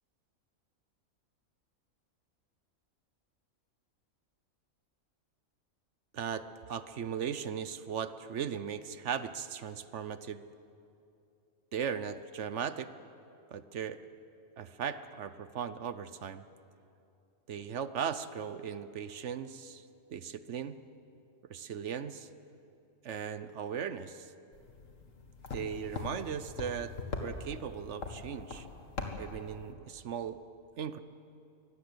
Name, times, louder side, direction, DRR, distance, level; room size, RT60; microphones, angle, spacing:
voice 1, 6.1-10.4 11.7-12.9 13.5-14.0 14.6-16.4 17.5-19.8 20.1-20.8 21.5-22.3 23.0-24.3 25.5-26.9 27.2-28.7 29.2-30.4 30.8-31.0, right 7 dB, 60° right, 13 dB, 1.0 m, -38 dB
sound 1, 24.5-29.7, left 3 dB, 60° left, 2.2 m, -42 dB
24.0 x 18.5 x 8.1 m, 2.7 s
omnidirectional pair, 1.5 m